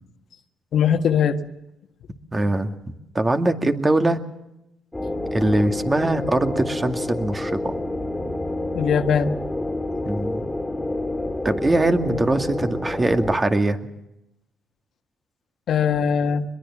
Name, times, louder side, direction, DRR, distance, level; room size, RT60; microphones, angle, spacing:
voice 1, 0.7-1.4 8.7-9.4 15.7-16.4, left 7 dB, 65° left, 7 dB, 1.7 m, -20 dB
voice 2, 2.3-2.7 3.1-4.2 5.3-7.8 10.1-10.4 11.4-13.8, right 2 dB, 20° right, 6 dB, 2.3 m, -22 dB
sound 1, 4.9-13.4, left 2 dB, 10° left, 3.1 m, -28 dB
24.0 x 22.0 x 7.4 m, 0.90 s
cardioid pair, 90°, 0 cm